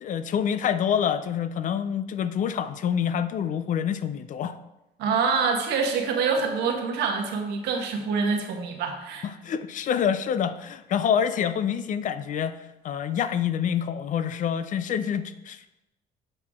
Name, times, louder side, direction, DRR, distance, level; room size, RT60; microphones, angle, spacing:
voice 1, 0.0-4.6 9.2-15.7, left 8 dB, 50° left, 12 dB, 0.5 m, -27 dB
voice 2, 5.0-9.3, right 5 dB, 80° right, 2 dB, 1.2 m, -26 dB
7.6 x 4.7 x 3.6 m, 0.96 s
cardioid pair, 110°, 17 cm